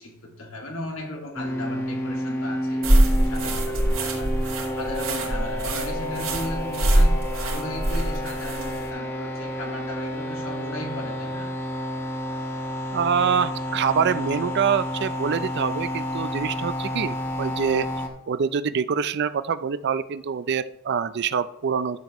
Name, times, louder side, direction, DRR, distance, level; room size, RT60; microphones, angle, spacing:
voice 1, 0.0-4.4 4.8-11.5, left 1 dB, 85° left, 0 dB, 2.1 m, -36 dB
sound 1, 1.4-18.1, equal, 10° left, 1.1 m, -30 dB
sound 2, 2.8-8.9, right 1 dB, 80° right, 2.6 m, -23 dB
voice 2, 12.9-17.9 18.3-22.0, right 6 dB, 55° right, 15 dB, 0.4 m, -25 dB
12.5 x 7.2 x 3.0 m, 0.84 s
head